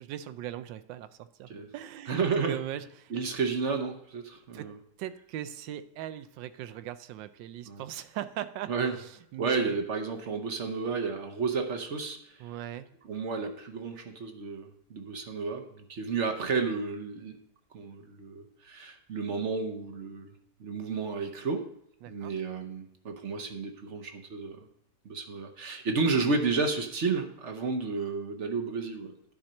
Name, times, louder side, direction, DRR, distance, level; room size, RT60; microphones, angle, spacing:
voice 1, 0.0-3.1 4.5-4.7 5.0-8.7 9.0-9.8 12.4-12.9 22.0-22.3, right 12 dB, 85° right, 13 dB, 1.3 m, -40 dB
voice 2, 2.1-2.6 3.1-4.7 7.7-7.8 8.7-9.0 9.4-12.3 13.0-17.4 17.7-20.3 20.6-21.7 22.1-24.6 25.0-29.1, right 4 dB, 50° right, 6 dB, 1.0 m, -31 dB
10.5 x 4.4 x 6.3 m, 0.77 s
omnidirectional pair, 1.9 m